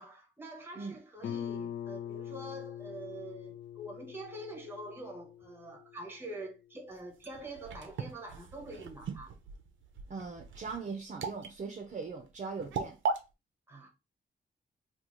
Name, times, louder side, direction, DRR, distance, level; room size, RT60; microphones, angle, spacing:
voice 1, 0.0-9.3 13.7-13.9, right 1 dB, 10° right, 0.8 m, -45 dB
Guitar, 1.2-6.6, left 10 dB, 75° left, 0.5 m, -43 dB
sound 1, 6.9-13.2, right 5 dB, 85° right, 0.6 m, -39 dB
voice 2, 10.1-13.0, right 4 dB, 40° right, 0.6 m, -40 dB
3.0 x 2.4 x 3.6 m
wide cardioid pair, 155°, 20 cm